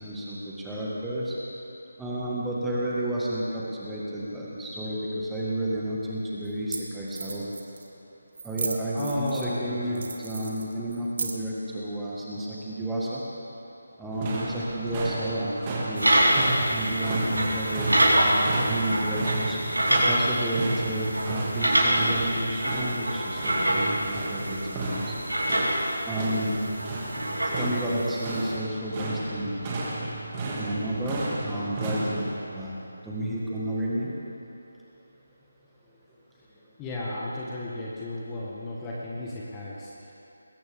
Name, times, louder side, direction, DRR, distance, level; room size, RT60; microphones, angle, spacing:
voice 1, 0.0-1.4 2.0-7.5 8.4-13.2 14.0-15.6 15.9-16.4 16.7-17.9 18.2-25.2 26.0-26.7 27.6-29.7 30.6-34.1, right 1 dB, 5° right, -7 dB, 1.8 m, -31 dB
sound 1, 5.6-5.7 6.5-6.6 6.7-6.8 7.1-7.9 8.3-9.6 9.9-11.6, right 4 dB, 45° right, 1.5 m, -35 dB
voice 2, 8.9-10.0 36.8-40.1, left 1 dB, 15° left, -6 dB, 1.5 m, -34 dB
sound 2, 14.1-32.4, right 2 dB, 20° right, 2.2 m, -33 dB
sound 3, 16.0-28.5, right 1 dB, 75° right, 4.4 m, -26 dB
21.0 x 17.0 x 3.7 m, 2.9 s
figure-of-eight pair, 155°, 0 cm